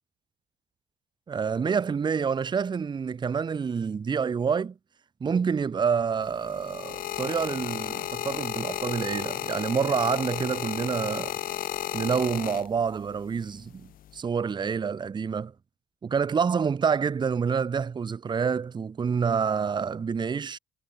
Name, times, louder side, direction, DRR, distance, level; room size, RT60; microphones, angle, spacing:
voice 1, 1.3-4.7 5.2-11.4 11.9-15.5 16.0-20.6, right 6 dB, 25° right, 0.8 m, -27 dB
sound 1, 6.2-13.1 13.9-14.2, left 13 dB, 60° left, 0.7 m, -33 dB
cardioid pair, 110°, 17 cm